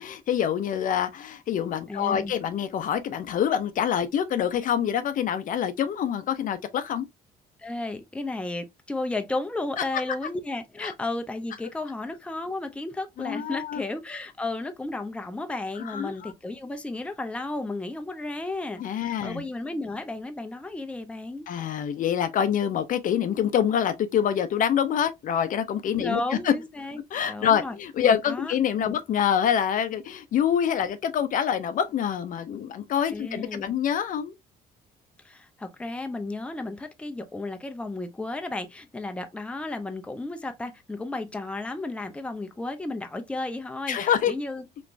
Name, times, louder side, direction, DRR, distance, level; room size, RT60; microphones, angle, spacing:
voice 1, 0.0-7.1 10.8-10.9 13.2-13.8 15.8-16.3 18.8-19.4 21.5-26.5 27.1-34.3 43.9-44.3, left 9 dB, 50° left, 0.5 m, -26 dB
voice 2, 1.9-2.3 7.6-21.5 26.0-27.0 27.3-27.7 28.0-29.0 33.1-33.7 35.2-44.8, left 2 dB, 5° left, 0.5 m, -33 dB
3.2 x 3.0 x 2.5 m
cardioid pair, 110°, 17 cm